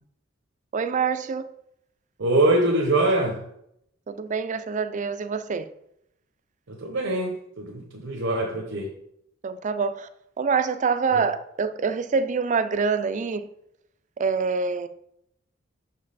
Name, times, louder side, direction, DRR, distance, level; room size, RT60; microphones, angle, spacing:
voice 1, 0.7-1.5 4.1-5.7 9.4-10.1 10.4-13.5 14.2-14.9, right 5 dB, 40° right, 0.4 m, -25 dB
voice 2, 2.2-3.4 6.7-8.9 11.1-11.2, right 2 dB, 75° right, 0.8 m, -23 dB
5.9 x 5.3 x 4.1 m
head